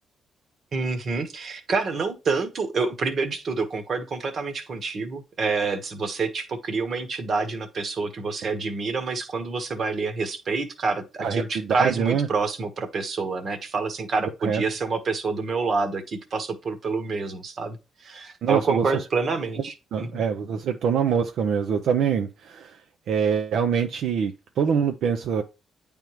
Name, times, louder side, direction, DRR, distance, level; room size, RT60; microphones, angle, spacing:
voice 1, 0.7-17.8 18.0-20.2, right 4 dB, 50° right, 1.2 m, -27 dB
voice 2, 11.2-12.3 14.4-14.6 18.4-19.0 19.9-22.8 23.1-25.4, right 7 dB, 75° right, 0.5 m, -24 dB
9.0 x 3.5 x 3.0 m
cardioid pair, 90°, 0 cm